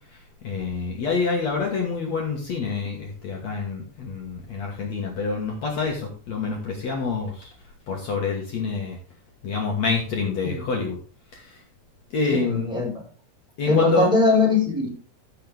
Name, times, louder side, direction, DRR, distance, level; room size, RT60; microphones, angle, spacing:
voice 1, 0.4-7.5 7.9-9.0 9.4-11.0 11.3-11.6 12.1-12.7 13.6-14.1, left 4 dB, 60° left, 0 dB, 1.9 m, -27 dB
voice 2, 12.3-12.9 13.7-14.9, left 3 dB, ahead, -3 dB, 3.7 m, -20 dB
14.5 x 6.1 x 3.4 m, 0.37 s
omnidirectional pair, 5.2 m